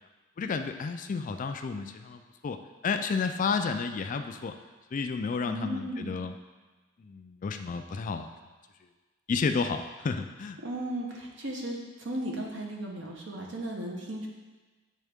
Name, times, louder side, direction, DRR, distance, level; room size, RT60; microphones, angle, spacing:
voice 1, 0.4-2.6 2.8-4.5 4.9-6.3 7.0-8.3 9.3-10.6, left 5 dB, 40° left, 7 dB, 0.3 m, -31 dB
voice 2, 5.4-6.2 10.6-14.3, right 1 dB, 65° right, -1 dB, 1.1 m, -36 dB
8.4 x 3.6 x 3.5 m, 1.3 s
head